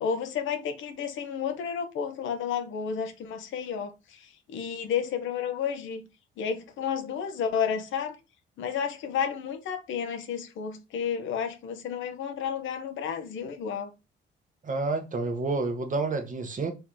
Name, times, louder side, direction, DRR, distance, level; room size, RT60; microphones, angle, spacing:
voice 1, 0.0-6.0 6.4-8.2 8.6-13.9, left 7 dB, 80° left, 0.9 m, -31 dB
voice 2, 14.6-16.7, right 3 dB, 40° right, 1.2 m, -29 dB
4.5 x 3.0 x 3.8 m
cardioid pair, 90°, 20 cm